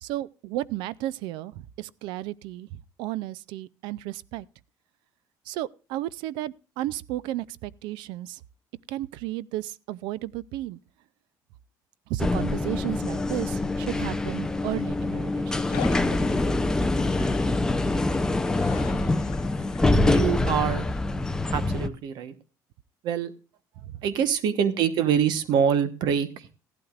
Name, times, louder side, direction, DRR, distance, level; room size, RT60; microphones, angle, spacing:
voice 1, 0.0-4.5 5.5-8.4 8.9-10.8 12.1-16.2 23.8-23.9, right 15 dB, 85° right, 0.4 m, -33 dB
sound 1, 12.2-21.9, left 2 dB, 10° left, 0.5 m, -25 dB
sound 2, 15.7-21.0, left 13 dB, 80° left, 0.8 m, -42 dB
voice 2, 20.1-20.9 21.5-22.3 23.0-23.3 24.0-26.5, right 8 dB, 65° right, 1.1 m, -25 dB
16.0 x 11.5 x 2.4 m
cardioid pair, 150°, 8 cm